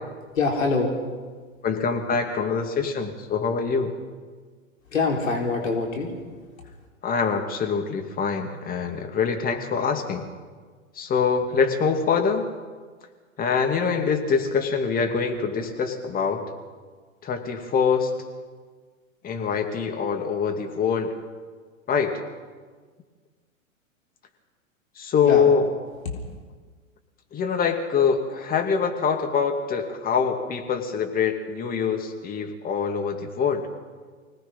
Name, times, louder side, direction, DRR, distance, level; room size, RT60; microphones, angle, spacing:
voice 1, 0.4-0.9 4.9-6.1 25.2-25.5, left 4 dB, 70° left, 0 dB, 4.2 m, -24 dB
voice 2, 1.6-3.9 7.0-10.3 11.0-12.5 13.4-16.4 17.2-18.1 19.2-21.2 21.9-22.2 25.0-25.6 27.3-33.7, left 6 dB, 20° left, 4 dB, 2.5 m, -24 dB
25.0 x 18.5 x 5.7 m, 1.5 s
figure-of-eight pair, 110°, 41 cm